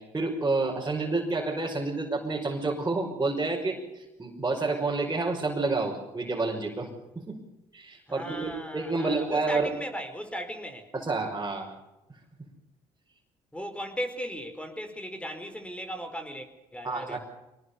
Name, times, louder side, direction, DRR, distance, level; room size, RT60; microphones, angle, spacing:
voice 1, 0.0-6.9 7.2-7.4 7.7-9.7 10.9-11.8 16.8-17.2, right 3 dB, 20° right, -3 dB, 5.8 m, -29 dB
voice 2, 8.1-10.9 13.5-17.2, equal, 10° left, 7 dB, 4.9 m, -37 dB
24.5 x 19.5 x 7.1 m, 0.95 s
supercardioid pair, 65°, 14 cm